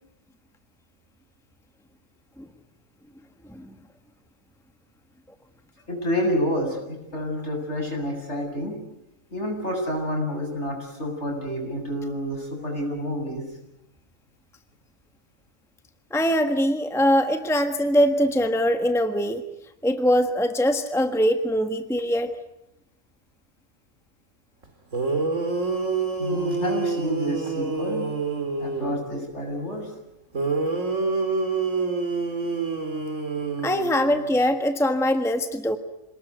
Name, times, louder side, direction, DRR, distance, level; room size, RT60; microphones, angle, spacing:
voice 1, 5.9-8.7 9.3-13.4 26.2-28.0 28.6-29.9, equal, 55° left, 1 dB, 7.9 m, -29 dB
voice 2, 16.1-19.4 19.8-22.3 33.6-35.8, equal, ahead, 7 dB, 1.4 m, -22 dB
sound 1, 24.6-24.7 24.9-29.1 30.3-34.4, right 4 dB, 65° right, 3.2 m, -27 dB
28.0 x 19.5 x 9.5 m, 0.83 s
omnidirectional pair, 1.4 m